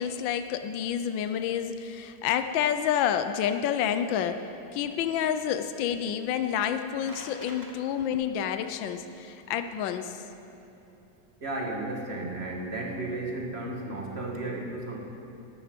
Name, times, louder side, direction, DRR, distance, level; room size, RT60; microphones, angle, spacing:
voice 1, 0.0-10.2, left 9 dB, 85° left, 9 dB, 1.4 m, -29 dB
sound 1, 6.9-7.7, right 1 dB, 15° right, 0.8 m, -46 dB
voice 2, 11.4-15.1, right 2 dB, 35° right, 0 dB, 1.6 m, -34 dB
13.5 x 11.0 x 5.1 m, 3.0 s
omnidirectional pair, 2.0 m